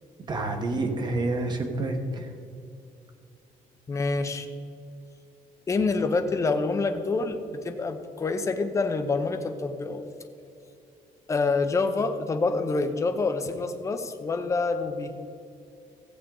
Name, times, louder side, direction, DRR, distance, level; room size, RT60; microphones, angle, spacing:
voice 1, 0.2-2.3, right 2 dB, 30° right, 5 dB, 1.1 m, -28 dB
voice 2, 3.9-4.5 5.7-10.1 11.3-15.2, left 3 dB, 20° left, 7 dB, 0.7 m, -27 dB
15.0 x 8.3 x 3.8 m, 2.6 s
cardioid pair, 170°, 14 cm